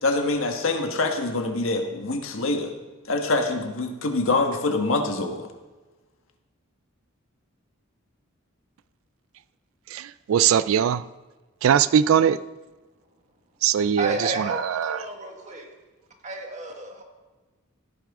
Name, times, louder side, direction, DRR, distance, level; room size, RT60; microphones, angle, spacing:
voice 1, 0.0-2.7 3.1-5.5, left 2 dB, 70° left, 4 dB, 1.4 m, -25 dB
voice 2, 9.9-11.0 11.6-12.4 13.6-15.0, right 8 dB, 75° right, 16 dB, 0.3 m, -21 dB
voice 3, 14.0-15.7 16.2-17.0, right 2 dB, 35° right, 2 dB, 1.7 m, -32 dB
16.0 x 9.1 x 3.7 m, 1.2 s
head